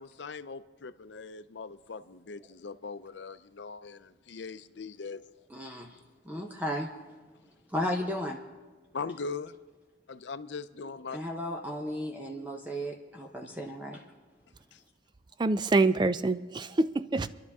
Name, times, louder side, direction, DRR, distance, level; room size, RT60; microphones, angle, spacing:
voice 1, 0.0-5.2 6.3-6.4 8.9-9.5 10.1-11.2 14.7-14.8, left 4 dB, 80° left, 0.6 m, -40 dB
voice 2, 5.5-6.0 6.3-6.9 7.7-8.4 11.1-14.0, equal, 10° right, 0.8 m, -34 dB
voice 3, 15.4-17.3, right 3 dB, 25° right, 0.4 m, -26 dB
27.5 x 11.5 x 3.6 m
head